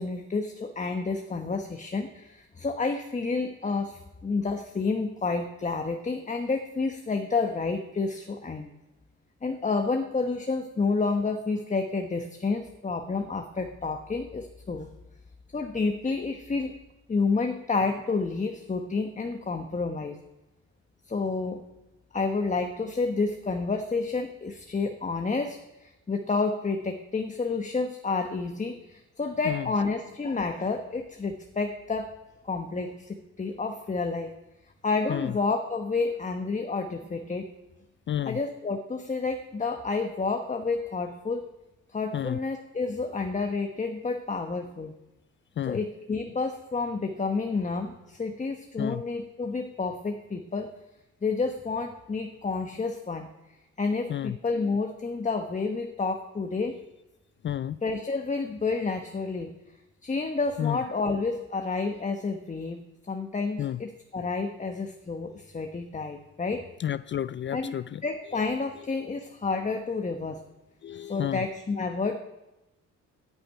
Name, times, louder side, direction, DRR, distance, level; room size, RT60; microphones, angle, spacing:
voice 1, 0.0-8.7 9.4-14.9 15.5-16.7 17.1-20.2 21.1-21.6 22.1-32.1 32.4-34.3 34.8-37.5 38.3-41.5 41.9-45.0 45.7-50.7 51.2-53.3 53.8-56.8 57.8-59.5 60.0-66.7 67.5-67.7 68.0-70.4 71.1-72.2, left 4 dB, 25° left, 5 dB, 1.1 m, -30 dB
voice 2, 38.1-38.4 42.1-42.4 45.6-45.8 48.8-49.0 54.1-54.4 57.4-57.8 60.6-60.8 63.6-63.8 66.8-68.0 69.0-69.1 70.8-71.5, left 10 dB, 40° left, 17 dB, 0.4 m, -31 dB
10.0 x 10.0 x 9.2 m, 1.0 s
cardioid pair, 90°, 30 cm